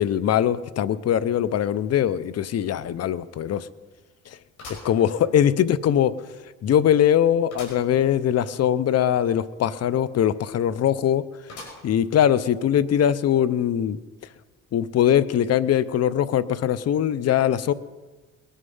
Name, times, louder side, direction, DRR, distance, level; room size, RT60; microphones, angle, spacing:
voice 1, 0.0-3.7 4.8-6.1 6.6-11.2 11.8-14.0 14.7-17.7, left 10 dB, 55° left, 17 dB, 0.7 m, -21 dB
sound 1, 2.3-2.4 2.9-3.0 4.6-5.7 6.2-6.3 7.5-7.9 8.3-8.4 8.6-8.7 11.5-12.1 12.7-12.8 13.8-13.9, left 3 dB, 75° left, 5.8 m, -43 dB
21.0 x 10.0 x 5.5 m, 1.3 s
cardioid pair, 90°, 30 cm